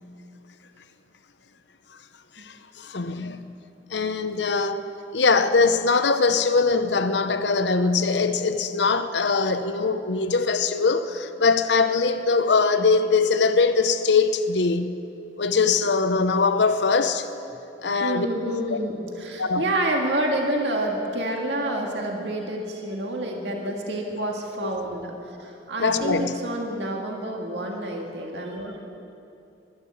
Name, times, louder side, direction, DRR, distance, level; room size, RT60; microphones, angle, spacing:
voice 1, 2.4-3.5 3.9-4.9 5.1-15.0 15.4-17.3 17.8-18.3 18.7-18.8 19.4-19.7 24.2-24.3 24.6-24.7 25.8-26.4, left 4 dB, 75° left, 0.8 m, -22 dB
voice 2, 18.0-28.8, right 1 dB, 80° right, 1.9 m, -28 dB
12.0 x 12.0 x 9.5 m
head